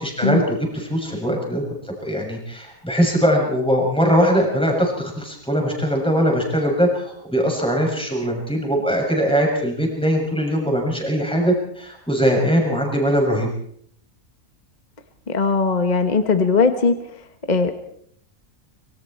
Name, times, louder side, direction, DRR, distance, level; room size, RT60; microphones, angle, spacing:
voice 1, 0.0-13.5, equal, 5° left, 0 dB, 6.8 m, -21 dB
voice 2, 15.3-17.0 17.5-17.7, left 4 dB, 30° left, 8 dB, 1.3 m, -19 dB
26.0 x 25.0 x 4.4 m, 0.66 s
omnidirectional pair, 1.6 m